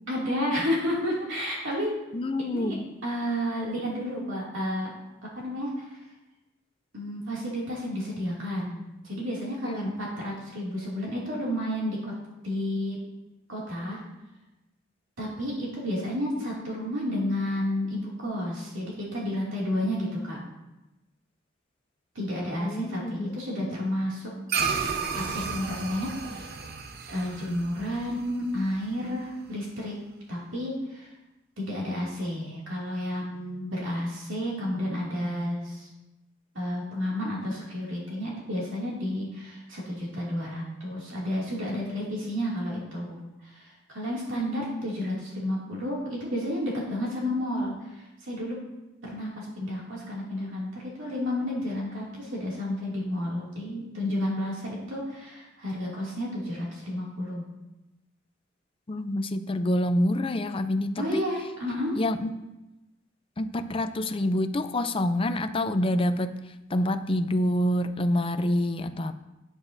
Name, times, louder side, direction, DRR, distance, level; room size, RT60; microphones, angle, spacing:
voice 1, 0.1-1.9 2.4-4.9 5.3-6.0 6.9-12.1 12.4-13.0 13.5-14.0 15.2-20.4 22.1-24.3 25.1-26.5 27.1-30.0 30.3-31.1 31.6-35.9 36.5-48.6 49.0-57.4 61.0-61.9, left 1 dB, 85° right, -5 dB, 2.5 m, -31 dB
voice 2, 2.1-2.9 9.6-10.0 22.6-23.7 58.9-61.3 61.9-62.3 63.4-69.1, left 1 dB, 30° left, 9 dB, 0.5 m, -27 dB
sound 1, 24.5-29.1, right 5 dB, 55° right, 0.8 m, -33 dB
12.5 x 8.8 x 2.7 m, 1.0 s
head